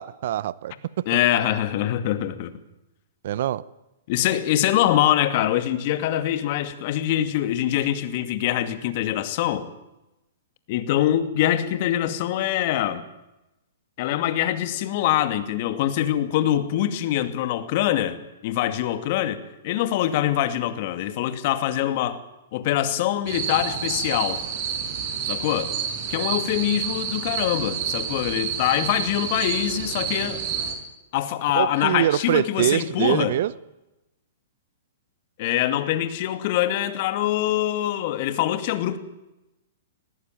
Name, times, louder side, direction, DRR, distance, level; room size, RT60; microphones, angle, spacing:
voice 1, 0.0-1.0 3.2-3.6 31.5-33.5, right 12 dB, 60° right, 20 dB, 0.8 m, -24 dB
voice 2, 1.1-2.5 4.1-9.7 10.7-13.0 14.0-18.2 18.4-22.2 22.5-24.4 25.2-25.7 26.1-30.4 31.1-33.3 35.4-39.0, left 12 dB, 50° left, 10 dB, 2.3 m, -24 dB
sound 1, 23.3-30.7, right 7 dB, 45° right, 6.2 m, -29 dB
19.5 x 18.5 x 9.3 m, 0.96 s
hypercardioid pair, 130°, 0 cm